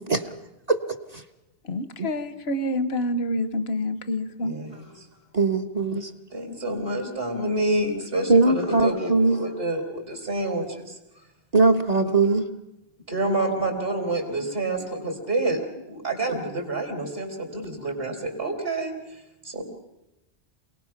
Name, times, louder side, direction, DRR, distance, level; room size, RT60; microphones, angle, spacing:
voice 1, 1.6-4.5, left 1 dB, 75° left, 11 dB, 1.4 m, -27 dB
voice 2, 4.4-4.9 6.3-11.0 13.1-15.6 15.9-19.6, right 2 dB, 65° right, 3 dB, 4.2 m, -28 dB
voice 3, 5.3-6.1 8.3-9.4 11.5-12.4, right 3 dB, 40° right, 7 dB, 1.2 m, -20 dB
27.5 x 18.5 x 6.0 m, 0.93 s
omnidirectional pair, 1.1 m